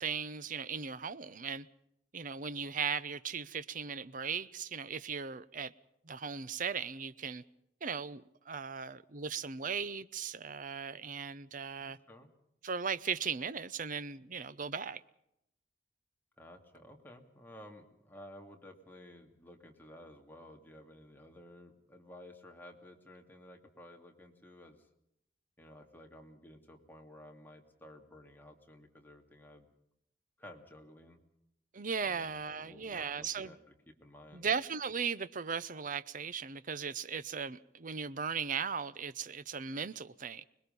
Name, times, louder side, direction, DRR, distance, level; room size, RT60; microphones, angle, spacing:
voice 1, 0.0-1.7 2.1-5.7 6.0-7.4 7.8-12.0 12.6-15.0 31.7-33.5 34.3-40.4, right 6 dB, 50° right, 0.8 m, -37 dB
voice 2, 11.8-12.3 16.4-24.9 25.6-29.7 30.4-31.2 32.0-33.6 33.9-34.5, left 1 dB, 10° left, 2.6 m, -54 dB
25.5 x 21.0 x 5.4 m
head